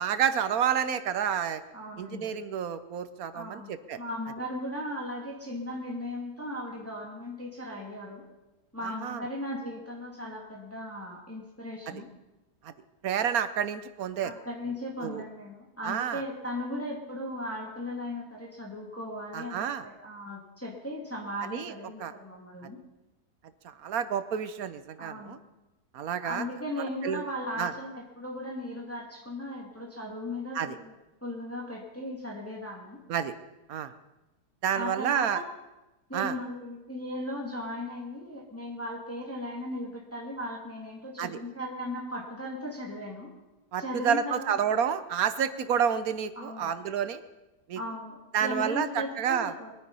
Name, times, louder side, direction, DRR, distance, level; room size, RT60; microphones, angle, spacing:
voice 1, 0.0-1.6 2.0-4.0 8.8-9.2 11.9-12.0 12.6-12.7 13.0-14.3 15.0-15.2 15.8-16.2 19.3-19.9 21.4-21.7 22.0-22.1 23.6-25.4 25.9-26.4 27.0-27.2 27.6-27.7 30.5-30.7 33.1-33.3 33.7-33.9 34.6-35.4 36.1-36.4 41.2-41.4 43.7-47.2 47.7-47.8 48.3-49.5, right 8 dB, 65° right, 12 dB, 1.2 m, -29 dB
voice 2, 1.7-2.3 3.3-8.2 8.7-12.1 14.2-22.8 25.0-25.3 26.2-30.9 31.2-33.0 34.7-35.5 36.1-43.3 43.8-44.6 46.4-46.7 47.8-49.7, left 1 dB, 10° left, -2 dB, 2.4 m, -37 dB
22.0 x 9.4 x 5.5 m, 1.0 s
omnidirectional pair, 1.8 m